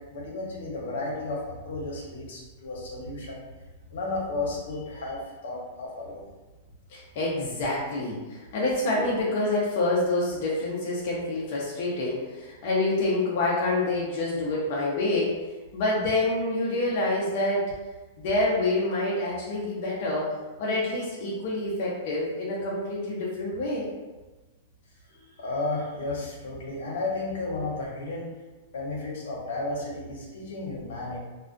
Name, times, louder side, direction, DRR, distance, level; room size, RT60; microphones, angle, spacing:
voice 1, 0.0-3.4 3.9-6.2 11.9-12.1 25.1-28.3 28.7-31.2, left 2 dB, 80° left, -3 dB, 0.7 m, -33 dB
voice 2, 6.9-15.3 15.7-17.6 18.2-20.3 20.6-23.9, left 2 dB, 45° left, -5 dB, 0.5 m, -27 dB
2.3 x 2.1 x 2.4 m, 1.2 s
supercardioid pair, 160°, 0 cm